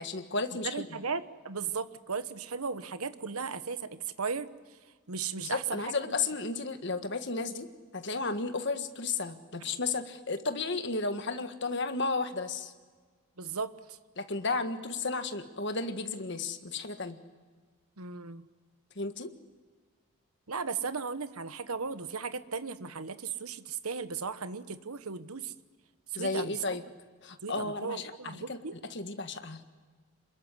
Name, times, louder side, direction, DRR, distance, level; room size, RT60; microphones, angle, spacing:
voice 1, 0.0-1.0 5.4-7.7 7.9-12.7 14.2-17.2 19.0-19.3 26.2-26.8 27.2-29.6, left 3 dB, 50° left, 8 dB, 1.6 m, -33 dB
voice 2, 0.6-4.5 5.1-6.1 13.4-14.0 18.0-18.4 20.5-25.5 26.1-26.6 27.4-28.8, right 5 dB, 85° right, 12 dB, 1.2 m, -36 dB
27.0 x 21.5 x 9.8 m, 1.5 s
head